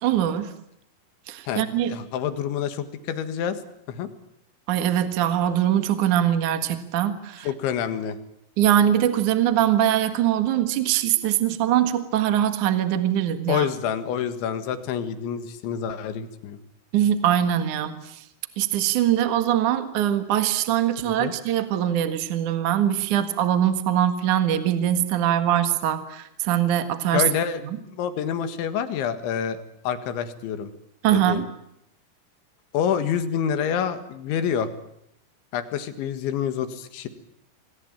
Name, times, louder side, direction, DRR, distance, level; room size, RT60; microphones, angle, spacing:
voice 1, 0.0-0.5 1.3-1.9 4.7-7.5 8.6-13.7 16.9-18.2 18.6-27.2 31.0-31.5, right 11 dB, 55° right, 9 dB, 2.4 m, -22 dB
voice 2, 1.5-3.6 3.9-4.1 7.4-8.2 13.5-16.6 21.0-21.3 27.1-27.6 27.9-30.7 31.1-31.4 32.7-34.7 35.5-37.1, left 8 dB, 80° left, 10 dB, 4.0 m, -27 dB
27.5 x 21.0 x 8.9 m, 0.75 s
omnidirectional pair, 5.4 m